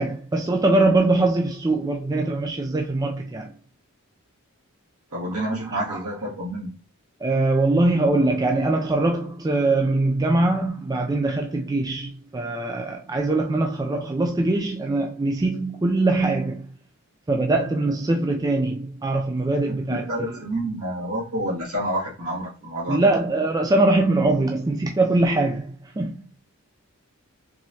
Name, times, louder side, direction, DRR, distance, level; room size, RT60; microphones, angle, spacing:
voice 1, 0.0-3.5 5.9-6.0 7.2-16.7 17.3-20.4 22.9-26.2, right 2 dB, 15° right, 0.3 m, -22 dB
voice 2, 5.1-6.7 19.9-23.1, right 1 dB, 80° right, 2.1 m, -28 dB
4.6 x 3.0 x 2.7 m
head